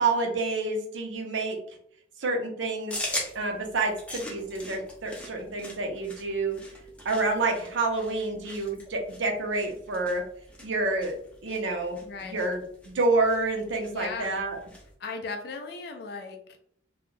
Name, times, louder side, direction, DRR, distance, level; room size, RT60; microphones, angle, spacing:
voice 1, 0.0-1.6 2.2-3.0 3.3-6.6 7.0-10.2 10.6-11.1 11.4-12.6 12.9-14.6, right 3 dB, 80° right, 2 dB, 0.6 m, -28 dB
sound 1, 2.9-14.9, left 1 dB, 5° left, 0.6 m, -41 dB
voice 2, 12.0-12.4 13.9-14.4 15.0-16.6, left 4 dB, 55° left, 4 dB, 0.4 m, -37 dB
2.3 x 2.0 x 3.1 m, 0.63 s
head